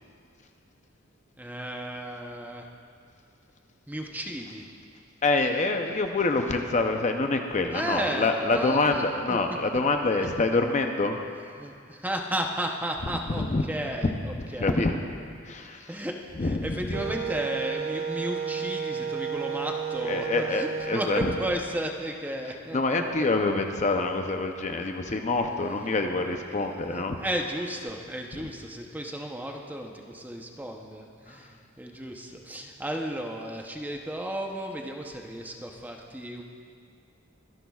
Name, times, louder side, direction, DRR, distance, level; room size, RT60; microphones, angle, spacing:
voice 1, 1.4-2.7 3.9-4.7 7.7-9.0 11.6-14.8 15.9-23.3 25.8-36.4, right 1 dB, 10° right, 1 dB, 0.7 m, -34 dB
voice 2, 5.2-11.2 13.3-13.6 14.4-15.0 15.5-15.9 16.4-17.0 20.1-21.3 22.7-27.2 28.4-28.5 31.3-31.4, left 3 dB, 35° left, 5 dB, 0.6 m, -26 dB
Wind instrument woodwind instrument, 16.9-21.5, right 7 dB, 80° right, 0.7 m, -32 dB
24.0 x 10.5 x 2.4 m, 2.3 s
head